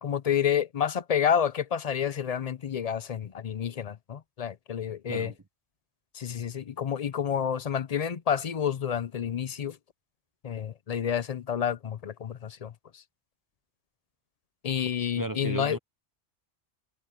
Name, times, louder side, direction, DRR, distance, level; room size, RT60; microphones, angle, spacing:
voice 1, 0.0-5.3 6.1-9.8 10.4-13.0 14.6-15.8, left 8 dB, 45° left, 0.5 m, -29 dB
voice 2, 15.2-15.8, right 2 dB, 20° right, 0.7 m, -34 dB
omnidirectional pair, 1.2 m